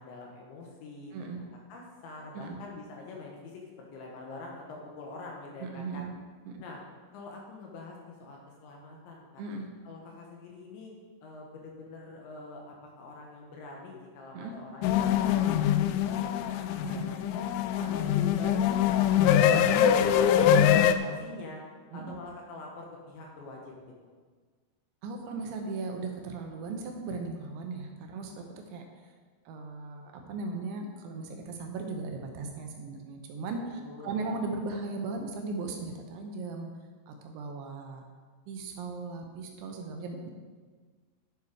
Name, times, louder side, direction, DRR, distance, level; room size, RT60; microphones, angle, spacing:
voice 1, 0.0-1.4 1.7-3.6 3.9-6.0 6.6-6.8 7.1-9.4 9.8-10.9 11.2-15.7 16.0-17.4 17.8-21.6 21.9-23.7 33.7-34.3, left 3 dB, 70° left, -1 dB, 3.3 m, -45 dB
voice 2, 5.6-6.1 6.5-6.6 9.4-9.7 14.3-14.5 16.8-17.1 17.8-18.0 21.9-22.2 25.0-28.4 28.7-28.8 29.5-36.7 37.1-38.0 38.5-40.3, right 3 dB, 80° right, 3 dB, 2.9 m, -37 dB
sound 1, 14.8-21.0, left 9 dB, 85° left, 2.6 m, -23 dB
10.5 x 7.1 x 5.0 m, 1.5 s
omnidirectional pair, 5.9 m